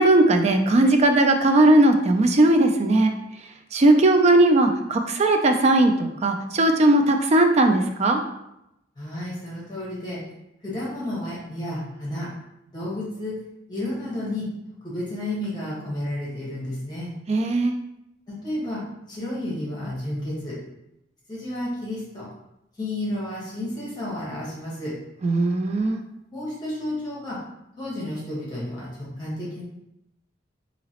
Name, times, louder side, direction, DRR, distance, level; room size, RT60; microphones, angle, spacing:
voice 1, 0.0-3.1 3.7-8.2 17.3-17.7 25.2-26.0, right 2 dB, 35° right, 5 dB, 0.4 m, -18 dB
voice 2, 9.0-10.2 10.6-12.3 12.7-13.4 13.7-14.5 14.8-17.1 18.3-20.6 21.3-22.3 22.8-25.0 26.3-27.4 27.8-29.6, left 1 dB, 25° left, -6 dB, 1.3 m, -31 dB
3.9 x 2.9 x 2.9 m, 0.86 s
head